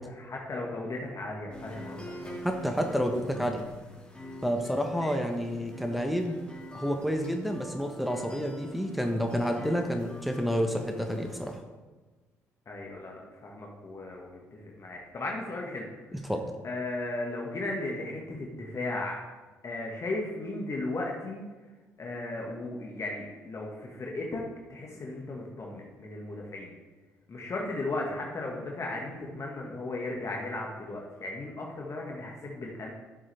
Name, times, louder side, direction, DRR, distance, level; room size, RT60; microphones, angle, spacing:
voice 1, 0.0-2.4 5.0-5.2 12.7-15.9 16.6-19.2 19.6-21.5 22.0-24.4 24.7-26.7 27.3-32.9, left 2 dB, 40° left, -1 dB, 1.9 m, -36 dB
sound 1, 1.5-11.6, left 1 dB, 15° left, 3.1 m, -45 dB
voice 2, 2.4-3.6 4.4-6.4 6.7-11.6 16.2-16.4, equal, ahead, 3 dB, 1.3 m, -29 dB
12.0 x 7.2 x 3.5 m, 1.3 s
figure-of-eight pair, 45°, 8 cm